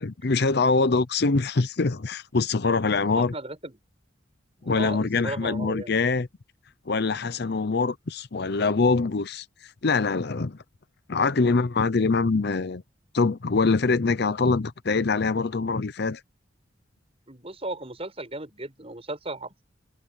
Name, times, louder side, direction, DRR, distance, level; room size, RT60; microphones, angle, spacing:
voice 1, 0.0-3.3 4.6-6.3 6.9-10.6 11.1-12.8 13.1-16.2, left 4 dB, 55° left, 0.7 m, -24 dB
voice 2, 3.1-3.8 4.6-5.9 17.3-19.6, right 2 dB, 30° right, 7.2 m, -36 dB
head